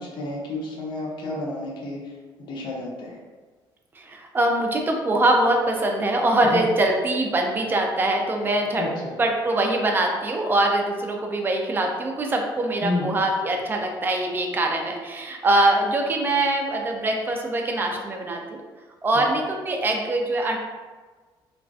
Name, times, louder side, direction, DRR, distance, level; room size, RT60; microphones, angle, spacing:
voice 1, 0.0-2.1 2.4-3.2 6.4-6.6 8.8-9.2 12.8-13.1 19.1-19.2, left 2 dB, 60° left, -3 dB, 0.6 m, -31 dB
voice 2, 4.0-8.9 9.2-18.6 19.0-20.6, right 1 dB, 25° right, 2 dB, 0.3 m, -23 dB
2.4 x 2.2 x 2.3 m, 1.4 s
cardioid pair, 120°, 9 cm